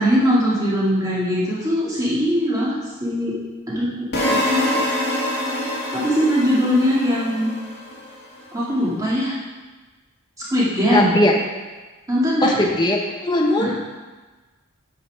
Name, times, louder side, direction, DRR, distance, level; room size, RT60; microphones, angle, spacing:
voice 1, 0.0-3.3 3.7-4.8 5.5-5.6 5.9-7.5 8.5-9.3 10.5-11.1 12.1-12.5 13.6-13.7, equal, 15° right, -8 dB, 1.9 m, -21 dB
sound 1, 4.1-8.2, equal, 50° left, 2.1 m, -25 dB
voice 2, 10.9-11.3 12.4-13.7, left 1 dB, 20° left, 0 dB, 0.8 m, -19 dB
9.4 x 5.8 x 5.4 m, 1.3 s
head